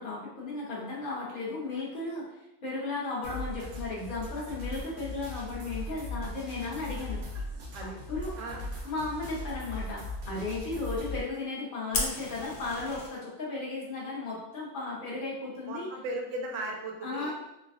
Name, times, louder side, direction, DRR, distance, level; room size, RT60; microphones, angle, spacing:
voice 1, 0.0-2.2 2.6-7.2 7.8-8.4 8.8-15.9 17.0-17.3, left 3 dB, 45° left, -5 dB, 0.8 m, -35 dB
sound 1, 3.2-11.2, left 1 dB, 90° right, 1.1 m, -39 dB
voice 2, 8.4-8.7 15.7-17.3, right 2 dB, 70° right, 0 dB, 0.9 m, -37 dB
Fire, 11.9-13.1, left 3 dB, 75° left, 1.0 m, -33 dB
3.3 x 2.2 x 2.4 m, 0.90 s
omnidirectional pair, 1.4 m